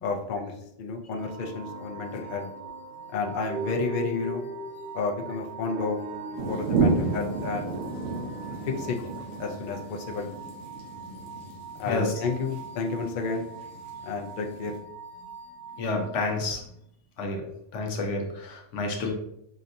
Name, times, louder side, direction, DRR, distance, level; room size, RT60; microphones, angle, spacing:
voice 1, 0.0-2.5 3.1-4.5 4.9-6.0 6.5-7.8 8.6-9.0 9.4-10.3 11.8-13.5 14.0-14.8, left 4 dB, 55° left, 2 dB, 0.6 m, -31 dB
sound 1, 1.2-16.4, right 5 dB, 20° right, 0.9 m, -44 dB
sound 2, 1.2-11.3, right 2 dB, 45° right, 1.0 m, -41 dB
sound 3, 6.4-14.8, right 4 dB, 75° right, 1.0 m, -32 dB
voice 2, 15.8-16.6 17.2-19.1, left 2 dB, 75° left, 2 dB, 1.1 m, -29 dB
5.1 x 2.7 x 2.5 m, 0.76 s
omnidirectional pair, 1.3 m